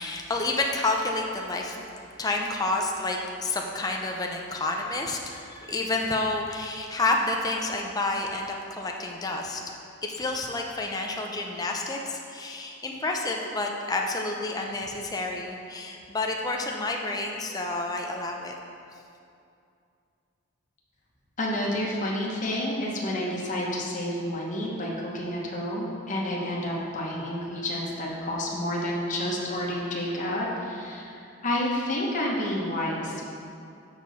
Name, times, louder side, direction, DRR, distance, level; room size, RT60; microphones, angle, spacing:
voice 1, 0.0-1.8 2.2-9.7 10.0-18.5, left 2 dB, 20° left, 1 dB, 0.5 m, -29 dB
voice 2, 21.4-33.4, left 1 dB, 35° left, -3 dB, 0.9 m, -30 dB
6.5 x 5.3 x 4.0 m, 2.5 s
head